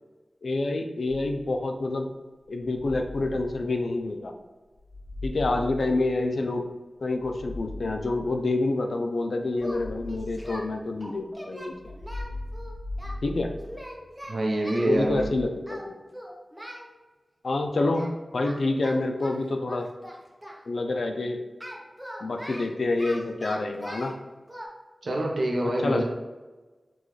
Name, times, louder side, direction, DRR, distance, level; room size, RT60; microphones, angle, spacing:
voice 1, 0.4-2.1 2.5-4.3 5.2-6.7 7.0-11.8 13.2-13.5 14.8-15.9 17.4-18.1 18.3-19.9 20.7-21.4 22.2-24.1 25.6-26.0, left 2 dB, 80° left, 4 dB, 0.5 m, -27 dB
sound 1, 1.0-1.8 2.5-4.2 4.8-6.6 7.1-8.7 9.5-11.1 11.7-14.2 14.8-15.4, left 1 dB, 30° left, 1.1 m, -39 dB
Singing, 9.6-10.7 11.0-13.1 13.6-15.0 15.7-15.9 16.1-16.9 17.9-18.1 18.4-20.6 21.6-24.1 24.5-24.7, equal, 5° right, 0.8 m, -41 dB
voice 2, 14.3-15.3 25.0-26.0, right 1 dB, 80° right, 0 dB, 0.8 m, -25 dB
6.1 x 2.4 x 3.2 m, 1.2 s
wide cardioid pair, 90°, 0 cm